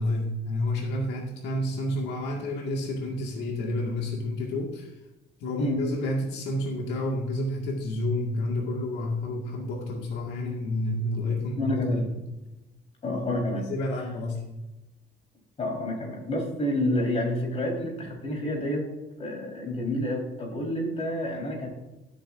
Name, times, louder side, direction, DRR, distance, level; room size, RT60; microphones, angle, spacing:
voice 1, 0.0-4.9 5.4-12.0 13.6-14.4, left 1 dB, 85° left, 0 dB, 2.0 m, -30 dB
voice 2, 11.6-12.0 13.0-13.7 14.0-14.1 15.6-18.8 19.2-21.7, left 1 dB, 40° left, 1 dB, 4.3 m, -29 dB
16.0 x 8.8 x 2.6 m, 1.0 s
cardioid pair, 110°, 17 cm